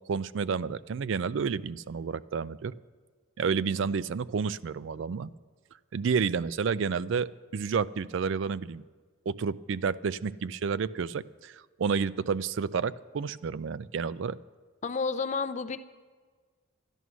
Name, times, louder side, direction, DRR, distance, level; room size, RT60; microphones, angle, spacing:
voice 1, 0.1-2.7 3.4-5.3 5.9-8.8 9.3-14.4, right 5 dB, 65° right, 17 dB, 0.4 m, -30 dB
voice 2, 14.8-15.8, left 4 dB, 35° left, 10 dB, 0.4 m, -30 dB
12.5 x 11.0 x 6.2 m, 1.5 s
head